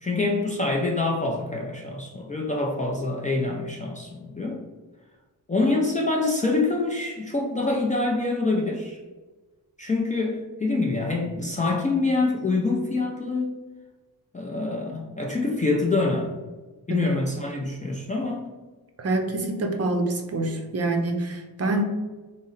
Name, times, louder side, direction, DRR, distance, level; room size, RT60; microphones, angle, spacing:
voice 1, 0.0-4.6 5.5-9.0 9.8-13.6 14.3-16.4 16.9-18.5, left 3 dB, 20° left, -1 dB, 0.4 m, -26 dB
voice 2, 19.0-21.8, right 2 dB, 40° right, 3 dB, 0.5 m, -26 dB
3.8 x 2.0 x 3.9 m, 1.3 s
wide cardioid pair, 120°, 39 cm